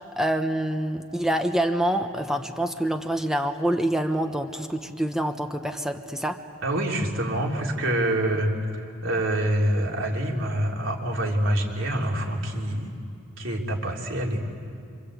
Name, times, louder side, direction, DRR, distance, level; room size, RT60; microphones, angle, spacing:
voice 1, 0.2-6.4, right 1 dB, ahead, 6 dB, 0.9 m, -26 dB
voice 2, 6.6-8.5 9.0-12.9 13.4-14.4, right 1 dB, 65° right, 0 dB, 3.3 m, -26 dB
26.5 x 26.0 x 8.3 m, 2.4 s
head